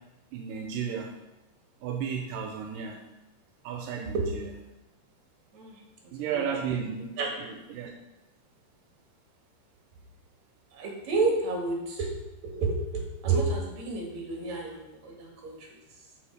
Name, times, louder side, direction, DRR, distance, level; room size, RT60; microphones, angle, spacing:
voice 1, 0.3-1.1 1.8-3.0 3.6-4.5 6.1-7.1 7.4-7.9, right 7 dB, 85° right, 3 dB, 2.3 m, -33 dB
voice 2, 10.7-12.1 12.4-15.7, right 3 dB, 55° right, 0 dB, 3.2 m, -30 dB
13.0 x 5.0 x 5.0 m, 1.0 s
omnidirectional pair, 3.9 m